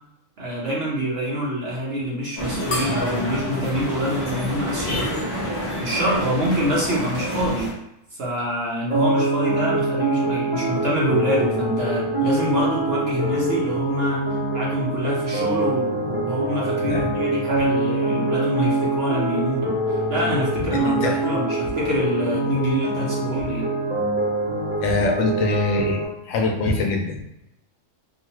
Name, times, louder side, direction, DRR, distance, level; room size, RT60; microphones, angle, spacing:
voice 1, 0.4-5.3 5.8-7.8 8.1-14.2 14.5-23.7, equal, 55° right, -5 dB, 1.0 m, -26 dB
sound 1, 2.4-7.7, equal, 25° left, 0.6 m, -28 dB
sound 2, 2.7-5.5, left 1 dB, 40° left, 0.9 m, -35 dB
sound 3, 8.9-26.0, right 2 dB, 35° right, 0.8 m, -24 dB
voice 2, 20.6-21.2 24.8-27.2, left 3 dB, 80° left, 1 dB, 1.0 m, -24 dB
2.7 x 2.4 x 2.9 m, 0.82 s
omnidirectional pair, 1.3 m